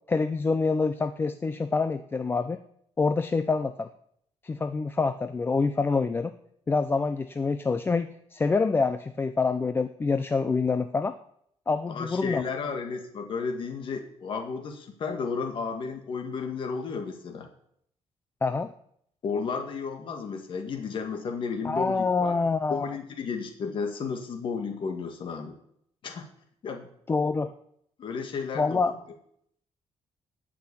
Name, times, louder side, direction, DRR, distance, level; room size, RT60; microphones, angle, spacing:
voice 1, 0.1-2.6 3.0-3.9 4.4-6.4 6.7-11.1 11.7-12.4 18.4-18.7 21.6-22.9 27.1-27.5 28.6-28.9, left 4 dB, 20° left, 10 dB, 0.5 m, -26 dB
voice 2, 11.9-17.5 19.2-22.3 22.7-25.6 26.0-26.3 26.6-26.9 28.0-29.0, left 5 dB, 45° left, 5 dB, 1.7 m, -33 dB
15.5 x 6.1 x 9.8 m, 0.70 s
cardioid pair, 170°, 11 cm